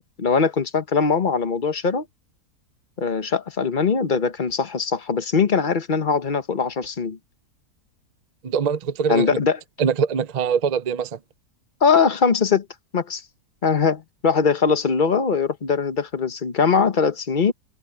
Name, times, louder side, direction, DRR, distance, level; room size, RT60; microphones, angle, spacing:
voice 1, 0.2-2.0 3.0-7.2 9.1-9.6 11.8-12.6 12.9-13.2 13.6-17.5, left 5 dB, 35° left, 1.1 m, -21 dB
voice 2, 8.4-9.4 9.8-11.2, right 6 dB, 70° right, 0.3 m, -23 dB
omnidirectional pair, 1.7 m